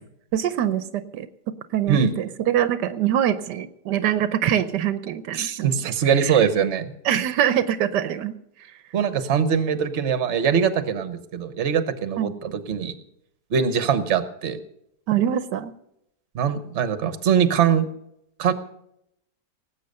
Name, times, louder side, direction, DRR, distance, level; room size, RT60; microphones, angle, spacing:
voice 1, 0.3-1.3 1.7-6.4 7.0-8.3 12.2-12.3 15.1-15.7, right 10 dB, 80° right, 12 dB, 1.3 m, -24 dB
voice 2, 5.3-6.9 8.9-12.9 13.5-14.6 16.3-17.8 18.4-18.5, right 7 dB, 45° right, 11 dB, 1.2 m, -22 dB
18.5 x 8.2 x 6.6 m, 0.78 s
omnidirectional pair, 1.8 m